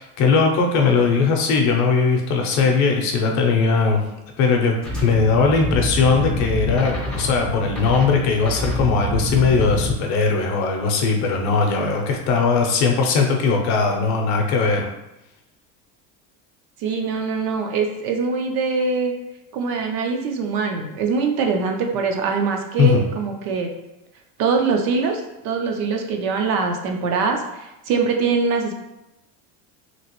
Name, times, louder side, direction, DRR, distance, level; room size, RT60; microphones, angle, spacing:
voice 1, 0.0-14.9 22.8-23.1, left 4 dB, 50° left, 2 dB, 0.6 m, -19 dB
sound 1, 4.8-10.0, left 1 dB, ahead, 0.4 m, -27 dB
voice 2, 16.8-19.1 19.5-23.7 24.4-28.7, right 5 dB, 50° right, 3 dB, 0.5 m, -23 dB
3.0 x 2.8 x 2.9 m, 0.94 s
cardioid pair, 160°, 36 cm